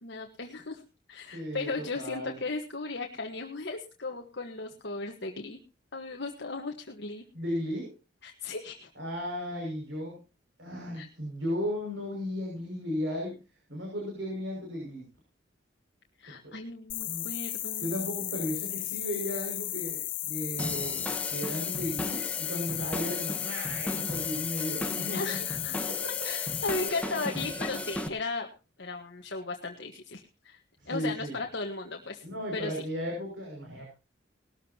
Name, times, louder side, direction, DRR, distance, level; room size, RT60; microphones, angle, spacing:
voice 1, 0.0-0.8 1.1-5.6 5.9-7.2 8.2-8.9 10.9-11.1 16.2-17.9 25.1-25.8 26.2-28.5 28.8-30.6 30.9-32.2 32.5-32.7, left 3 dB, 60° left, 3 dB, 1.4 m, -36 dB
voice 2, 1.3-2.3 7.3-7.9 8.9-10.2 10.6-13.3 13.7-15.1 16.3-16.5 17.1-17.2 17.8-25.4 25.7-26.1 30.8-31.4 32.2-33.8, equal, 75° right, -2 dB, 6.1 m, -35 dB
sound 1, 16.9-26.9, left 16 dB, 85° left, 1.3 m, -35 dB
sound 2, 20.6-28.1, left 1 dB, 5° left, 1.3 m, -36 dB
19.5 x 13.5 x 2.9 m, 0.31 s
head